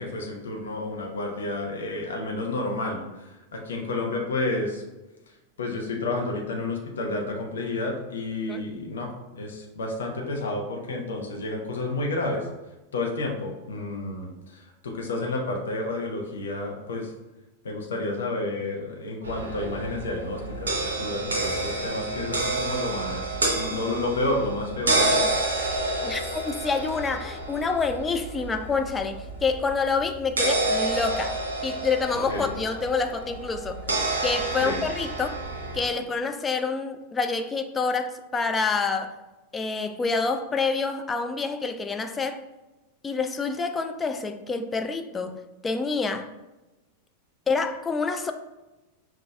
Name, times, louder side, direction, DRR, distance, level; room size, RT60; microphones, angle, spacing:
voice 1, 0.0-4.8 5.6-9.1 9.4-12.5 12.9-17.1 17.6-25.3 32.3-32.5 34.6-34.8, left 2 dB, 65° left, 0 dB, 0.7 m, -30 dB
sound 1, 19.2-35.8, right 2 dB, 70° right, 0.7 m, -29 dB
voice 2, 26.0-31.4 31.6-33.8 34.2-35.4 35.7-39.2 39.5-42.4 43.0-46.3 47.5-48.3, left 4 dB, 15° left, 7 dB, 0.3 m, -27 dB
5.7 x 2.4 x 2.3 m, 1.0 s
figure-of-eight pair, 90°, 0 cm